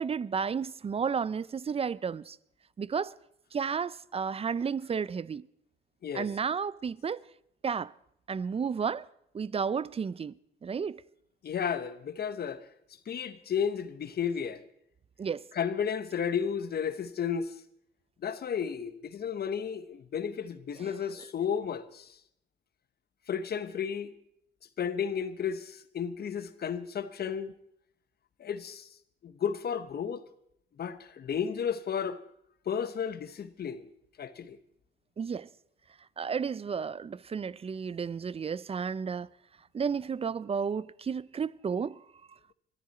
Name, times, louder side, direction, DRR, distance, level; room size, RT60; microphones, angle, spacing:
voice 1, 0.0-2.4 2.8-3.1 3.5-5.5 6.1-7.2 7.6-7.9 8.3-9.1 9.3-10.3 10.6-11.0 15.2-15.5 20.8-20.9 35.2-35.5 36.2-39.3 39.7-42.0, right 6 dB, 30° right, 0.5 m, -32 dB
voice 2, 6.0-6.3 11.4-12.7 13.1-14.6 15.5-17.6 18.2-22.2 23.3-24.1 24.8-27.5 28.4-28.9 29.2-30.3 30.8-32.2 32.6-33.8 34.2-34.6, left 7 dB, 50° left, 1.2 m, -33 dB
22.0 x 14.0 x 4.3 m
cardioid pair, 90°, 20 cm